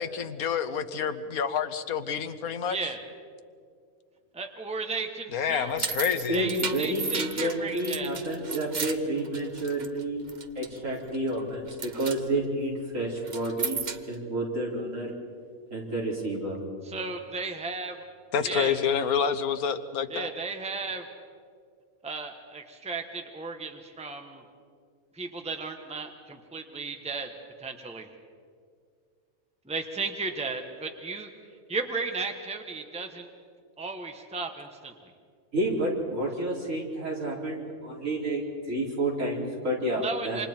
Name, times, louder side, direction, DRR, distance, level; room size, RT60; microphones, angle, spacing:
voice 1, 0.0-2.9 5.3-6.4 18.3-20.3, left 7 dB, 80° left, 11 dB, 1.4 m, -28 dB
voice 2, 2.7-3.0 4.3-5.9 6.3-8.1 16.8-18.0 18.4-18.8 20.1-21.0 22.0-24.4 25.1-27.3 27.6-28.1 29.7-31.3 31.7-33.3 33.8-34.9 39.9-40.5, right 4 dB, 5° right, 4 dB, 1.3 m, -35 dB
sound 1, 5.5-10.0 10.3-10.8 11.1-11.4 11.7-12.2 13.2-14.1, right 5 dB, 35° right, 0.9 m, -34 dB
voice 3, 6.3-15.1 15.7-16.6 35.5-38.4 38.7-40.4, right 1 dB, 60° right, -4 dB, 4.6 m, -30 dB
28.0 x 26.0 x 4.5 m, 2.1 s
omnidirectional pair, 1.5 m